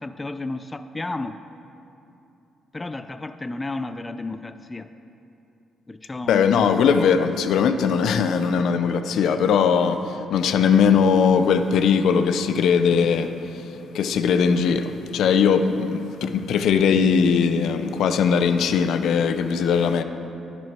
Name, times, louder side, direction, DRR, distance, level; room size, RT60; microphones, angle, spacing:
voice 1, 0.0-1.4 2.7-4.9 5.9-7.1, left 2 dB, 20° left, 10 dB, 0.3 m, -32 dB
voice 2, 6.3-20.0, left 6 dB, 75° left, 9 dB, 0.5 m, -20 dB
10.5 x 9.2 x 4.4 m, 2.8 s
cardioid pair, 90°, 0 cm